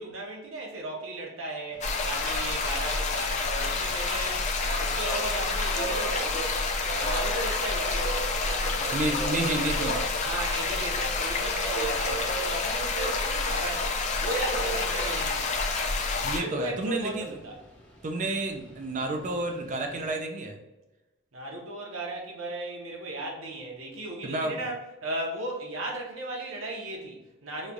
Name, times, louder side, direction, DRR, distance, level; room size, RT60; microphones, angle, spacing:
voice 1, 0.0-6.6 6.9-9.2 10.2-15.6 16.3-17.6 21.3-27.7, right 2 dB, 85° right, -1 dB, 0.8 m, -36 dB
Subway metro underground, 1.7-20.2, right 2 dB, 10° left, 0.9 m, -39 dB
sound 1, 1.8-16.4, left 3 dB, 35° left, 0.4 m, -29 dB
voice 2, 8.9-10.0 16.2-17.3 18.0-20.6 24.2-24.7, right 2 dB, 40° right, 3 dB, 0.4 m, -30 dB
3.1 x 2.3 x 3.8 m, 1.0 s
head